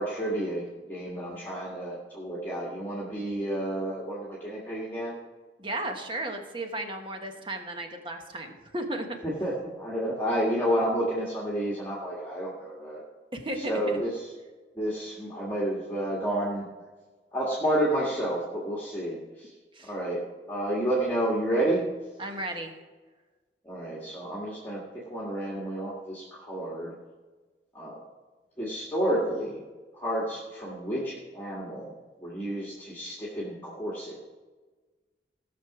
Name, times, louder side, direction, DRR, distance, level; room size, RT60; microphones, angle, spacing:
voice 1, 0.0-5.2 9.2-13.0 13.5-14.3 14.8-16.7 17.3-19.5 19.9-20.2 20.5-21.8 23.6-26.9 27.7-28.0 28.6-29.6 29.9-31.9 32.2-34.2, right 1 dB, 10° left, -5 dB, 1.7 m, -30 dB
voice 2, 5.6-9.2 13.3-13.7 19.7-19.9 22.2-22.7, right 1 dB, 30° right, 4 dB, 1.2 m, -34 dB
17.0 x 6.3 x 4.9 m, 1.3 s
head